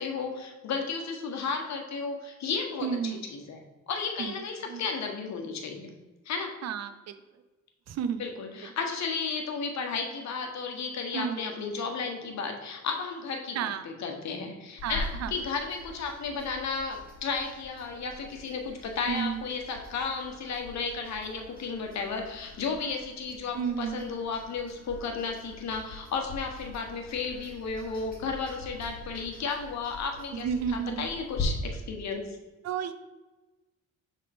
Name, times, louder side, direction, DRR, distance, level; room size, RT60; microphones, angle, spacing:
voice 1, 0.0-5.9 6.3-6.5 8.2-32.4, left 5 dB, 65° left, 3 dB, 1.1 m, -33 dB
voice 2, 2.8-3.2 4.2-4.3 4.7-4.8 6.6-7.2 7.9-8.2 11.1-11.6 13.5-13.9 14.8-15.3 19.1-19.4 23.5-24.1 30.3-31.1 32.6-32.9, right 7 dB, 60° right, 11 dB, 0.5 m, -32 dB
sound 1, 14.8-31.4, left 3 dB, 30° left, 1.8 m, -44 dB
6.4 x 3.6 x 4.1 m, 1.2 s
cardioid pair, 90°, 30 cm